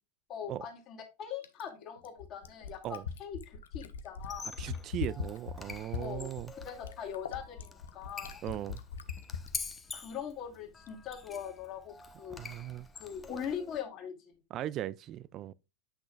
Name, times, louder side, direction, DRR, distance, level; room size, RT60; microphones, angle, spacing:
voice 1, 0.3-4.5 6.0-6.3 6.6-8.4 9.9-12.4 12.9-14.3, left 8 dB, 30° left, 2.1 m, -41 dB
Fill (with liquid), 1.4-9.5 10.9-11.0, left 7 dB, 65° left, 0.7 m, -40 dB
Squeak, 4.2-13.8, left 4 dB, 15° left, 0.9 m, -46 dB
voice 2, 4.6-6.5 8.4-8.8 12.4-12.9 14.5-15.5, right 12 dB, 35° right, 0.3 m, -38 dB
8.7 x 6.0 x 2.3 m
figure-of-eight pair, 90°, 0 cm